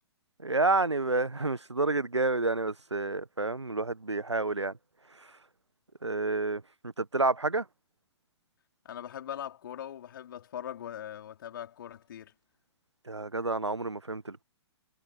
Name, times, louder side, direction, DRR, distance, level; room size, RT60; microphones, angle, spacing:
voice 1, 0.4-4.7 6.0-7.6 13.1-14.4, right 3 dB, 80° right, 1.4 m, -29 dB
voice 2, 8.8-12.3, left 10 dB, 50° left, 4.5 m, -41 dB
figure-of-eight pair, 120°, 15 cm